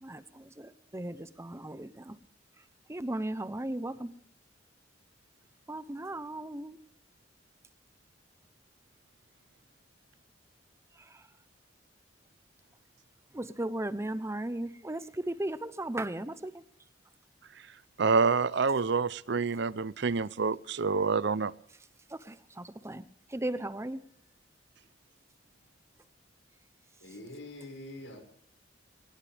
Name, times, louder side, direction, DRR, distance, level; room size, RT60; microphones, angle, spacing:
voice 1, 0.0-2.1 2.9-4.1 5.7-6.8 13.3-16.6 22.1-23.0 23.3-24.0, right 1 dB, 15° right, 0.7 m, -36 dB
voice 2, 18.0-21.5, right 4 dB, 65° right, 0.6 m, -27 dB
voice 3, 27.0-28.2, left 1 dB, 90° left, 6.0 m, -44 dB
22.0 x 18.5 x 3.4 m
head